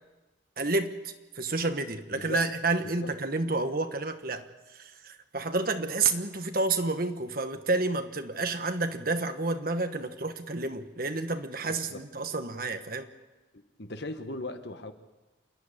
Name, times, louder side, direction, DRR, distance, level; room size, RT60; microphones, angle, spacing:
voice 1, 0.6-4.5 4.7-13.1, right 3 dB, 50° right, 8 dB, 1.4 m, -30 dB
voice 2, 11.7-12.0 13.5-14.9, left 2 dB, 65° left, 8 dB, 1.5 m, -38 dB
28.0 x 11.5 x 9.9 m, 1.1 s
head